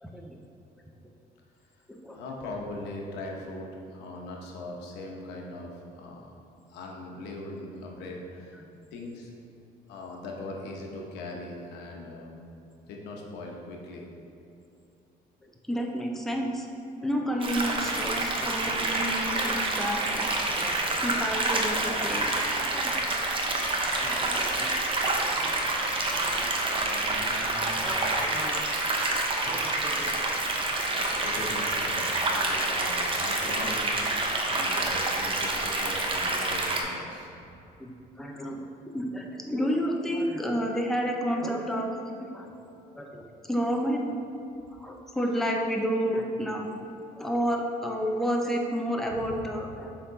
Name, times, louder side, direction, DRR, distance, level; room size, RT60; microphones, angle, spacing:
voice 1, 0.0-0.3 1.9-2.2 8.6-8.7 15.4-16.7 17.0-22.3 22.6-23.1 23.9-24.7 25.3-25.7 27.5-28.6 29.4-30.2 32.7-32.9 34.4-34.8 35.5-35.7 37.8-37.9 38.2-38.7 38.9-42.5 42.9-44.1 44.7-46.7 47.2-49.9, equal, ahead, 1 dB, 0.6 m, -31 dB
voice 2, 2.1-3.7 3.9-6.3 6.7-8.6 8.9-9.3 9.9-12.4 12.9-14.0 26.8-27.9 29.1-29.2 30.9-37.4 49.1-49.4, left 2 dB, 90° left, 0 dB, 1.0 m, -40 dB
sound 1, 17.4-36.8, right 2 dB, 30° right, 0.8 m, -28 dB
6.9 x 3.8 x 4.0 m, 2.7 s
cardioid pair, 110°, 17 cm